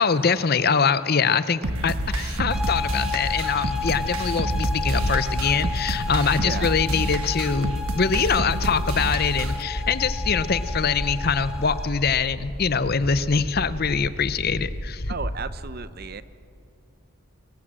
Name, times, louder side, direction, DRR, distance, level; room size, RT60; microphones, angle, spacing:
voice 1, 0.0-15.0, left 5 dB, 45° left, 14 dB, 0.6 m, -24 dB
sound 1, 1.6-9.6, right 1 dB, 75° right, 1.2 m, -29 dB
sound 2, 1.7-2.9 3.2-15.4, equal, 80° left, 4.1 m, -33 dB
sound 3, 2.5-11.9, left 3 dB, ahead, 1.8 m, -32 dB
voice 2, 6.4-6.8 15.1-16.2, right 4 dB, 45° right, 13 dB, 0.7 m, -34 dB
24.0 x 21.0 x 7.5 m, 2.6 s
head